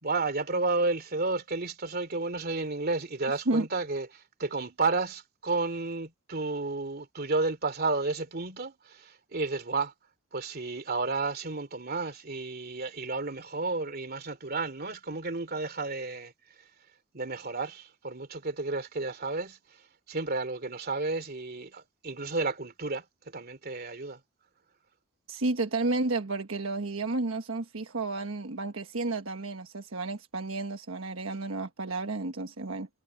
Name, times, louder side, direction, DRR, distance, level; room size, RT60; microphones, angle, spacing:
voice 1, 0.0-9.9 10.3-16.3 17.1-19.6 20.1-23.0 23.3-24.2, right 3 dB, 50° right, 2.8 m, -32 dB
voice 2, 25.3-32.9, right 2 dB, 75° right, 1.3 m, -31 dB
head